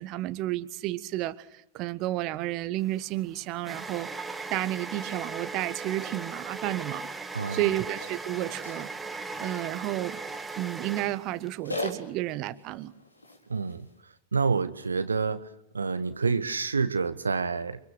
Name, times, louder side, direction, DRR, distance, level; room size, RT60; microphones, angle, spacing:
voice 1, 0.0-4.1 4.5-7.1 7.5-8.9 9.4-10.2 10.6-12.9, right 16 dB, 40° right, 13 dB, 1.2 m, -31 dB
sound 1, 2.8-11.5, right 3 dB, 10° right, 1.9 m, -38 dB
voice 2, 7.3-7.7 13.5-13.9 14.3-17.8, right 5 dB, 75° right, 12 dB, 1.2 m, -28 dB
sound 2, 7.9-14.0, left 2 dB, 80° left, 4.2 m, -42 dB
29.5 x 25.0 x 6.5 m, 0.78 s
figure-of-eight pair, 90°, 0 cm